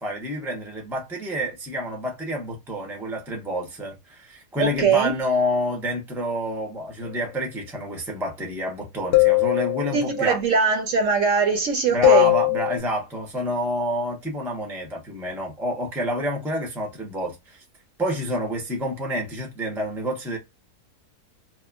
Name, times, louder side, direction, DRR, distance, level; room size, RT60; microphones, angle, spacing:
voice 1, 0.0-10.4 11.9-17.6 18.0-20.4, equal, 5° right, 0.4 m, -28 dB
voice 2, 4.6-5.1 9.9-12.3, right 5 dB, 65° right, 0.9 m, -21 dB
sound 1, 9.1-10.2 12.0-12.8, left 26 dB, 80° left, 1.1 m, -19 dB
3.0 x 2.1 x 2.2 m
omnidirectional pair, 1.7 m